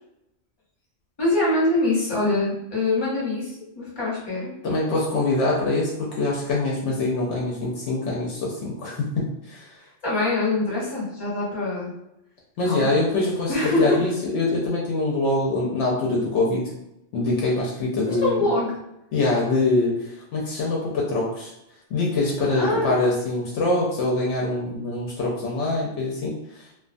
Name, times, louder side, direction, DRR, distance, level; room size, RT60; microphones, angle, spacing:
voice 1, 1.2-4.5 10.0-11.9 12.6-12.9 13.5-14.0 18.1-18.7 22.6-22.9, left 2 dB, 20° left, -7 dB, 0.9 m, -24 dB
voice 2, 4.6-9.7 12.6-16.6 17.1-18.5 19.1-21.5 21.9-26.8, left 2 dB, 70° left, -4 dB, 0.9 m, -24 dB
2.4 x 2.2 x 2.5 m, 0.84 s
omnidirectional pair, 1.3 m